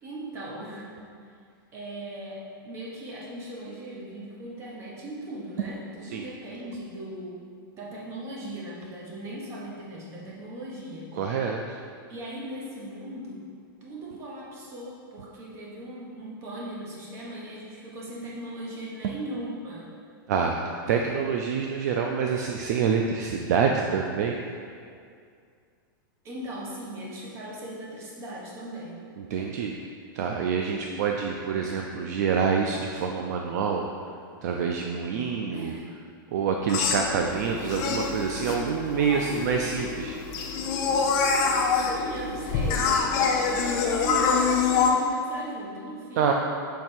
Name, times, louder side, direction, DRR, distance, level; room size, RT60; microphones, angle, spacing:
voice 1, 0.0-0.9 1.7-7.5 7.7-11.1 12.1-13.5 13.8-19.9 26.2-29.0 35.5-35.9 38.9-39.8 41.3-46.3, right 1 dB, 20° right, -4 dB, 0.9 m, -38 dB
voice 2, 11.2-11.8 19.0-19.1 20.3-24.4 29.2-29.7 30.1-33.9 34.4-35.7 36.3-40.1 46.2-46.3, right 6 dB, 50° right, 2 dB, 0.4 m, -26 dB
sound 1, 36.7-44.9, left 5 dB, 30° left, 0.5 m, -26 dB
6.4 x 3.3 x 4.4 m, 2.3 s
supercardioid pair, 170°, 12 cm